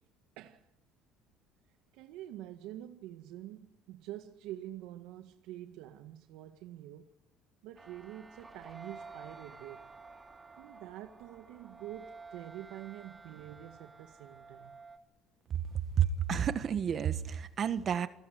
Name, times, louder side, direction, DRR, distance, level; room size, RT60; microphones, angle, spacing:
voice 1, 1.9-7.1 7.6-9.9 10.6-14.8, right 13 dB, 75° right, 1.8 m, -46 dB
sound 1, 7.8-15.0, right 4 dB, 10° right, 2.5 m, -52 dB
voice 2, 16.0-18.1, right 8 dB, 35° right, 1.6 m, -30 dB
28.5 x 19.0 x 9.5 m
cardioid pair, 145°, 0 cm